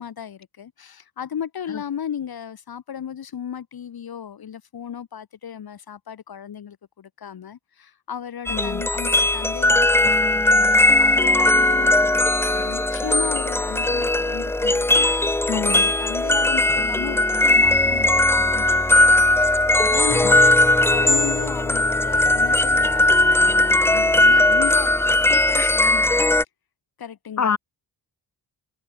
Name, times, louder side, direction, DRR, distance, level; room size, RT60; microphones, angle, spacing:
voice 1, 0.0-20.5 20.9-24.9 25.2-26.2 27.0-27.6, left 8 dB, 60° left, 1.3 m, -35 dB
voice 2, 8.5-8.8 15.5-15.9 20.2-20.4 27.4-27.6, left 6 dB, 40° left, 1.3 m, -25 dB
sound 1, 8.5-26.4, left 2 dB, 5° left, 0.3 m, -18 dB
wide cardioid pair, 130°, 42 cm